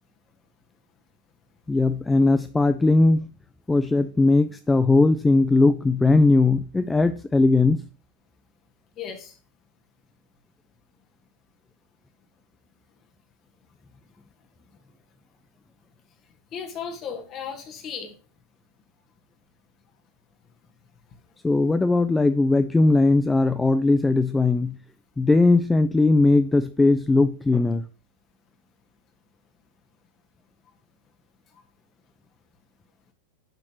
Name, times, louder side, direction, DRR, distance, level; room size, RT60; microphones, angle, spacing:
voice 1, 1.7-3.3 3.7-7.8 21.4-24.7 25.2-27.8, left 3 dB, 10° left, 11 dB, 0.4 m, -19 dB
voice 2, 9.0-9.3 16.5-18.1, left 7 dB, 30° left, 5 dB, 1.7 m, -35 dB
10.0 x 5.8 x 3.0 m, 0.36 s
figure-of-eight pair, 90°, 0 cm